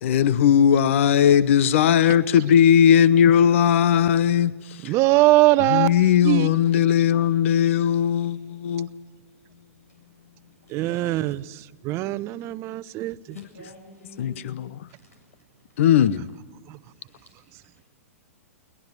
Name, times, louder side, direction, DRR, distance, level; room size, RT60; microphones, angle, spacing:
voice 1, 0.0-4.9 5.7-8.9 13.4-13.5 14.2-14.9 15.8-16.3, left 9 dB, 60° left, 0.8 m, -18 dB
voice 2, 4.8-6.5 10.7-13.7 16.7-16.8, right 19 dB, 35° right, 0.7 m, -22 dB
voice 3, 10.6-11.4 13.3-14.5 15.0-15.2 17.1-17.3, left 2 dB, 85° left, 7.4 m, -49 dB
22.5 x 20.0 x 9.3 m
hypercardioid pair, 115°, 8 cm